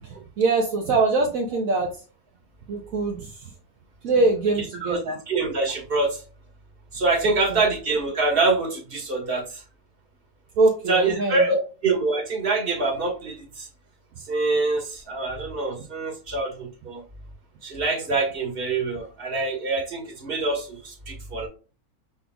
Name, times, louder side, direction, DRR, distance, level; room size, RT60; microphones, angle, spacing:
voice 1, 0.0-1.9 2.7-3.5 4.0-5.2 7.2-7.6 10.6-11.6, right 3 dB, 70° right, 0 dB, 1.2 m, -23 dB
voice 2, 4.8-6.2 6.9-9.6 10.9-11.6 11.8-13.7 14.2-17.0 17.6-21.5, right 3 dB, 40° right, 1 dB, 1.6 m, -25 dB
5.4 x 4.3 x 2.3 m, 0.36 s
omnidirectional pair, 1.6 m